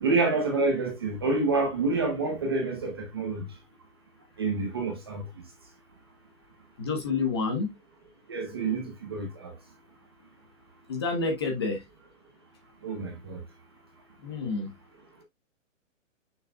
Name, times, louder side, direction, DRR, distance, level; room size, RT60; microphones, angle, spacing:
voice 1, 0.0-3.4 4.4-5.2 8.3-9.5 12.8-13.4, right 3 dB, 20° right, 0.9 m, -28 dB
voice 2, 6.8-7.7 10.9-11.8 14.2-14.7, left 4 dB, 20° left, 1.0 m, -28 dB
6.5 x 6.4 x 2.3 m
hypercardioid pair, 180°, 39 cm